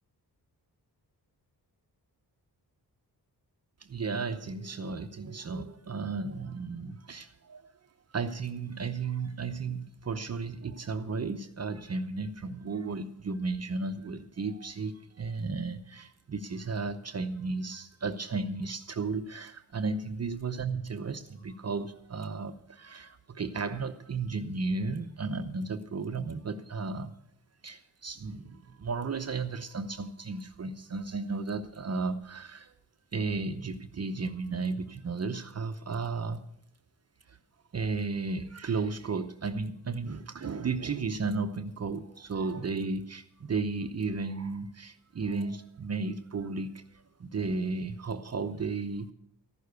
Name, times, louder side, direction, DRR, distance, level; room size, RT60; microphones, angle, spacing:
voice 1, 3.8-7.6 8.1-27.1 27.6-32.7 33.1-36.4 37.3-37.4 37.7-46.8 47.2-49.1, right 4 dB, 40° right, 8 dB, 0.8 m, -34 dB
14.5 x 6.5 x 8.2 m, 0.76 s
cardioid pair, 90°, 40 cm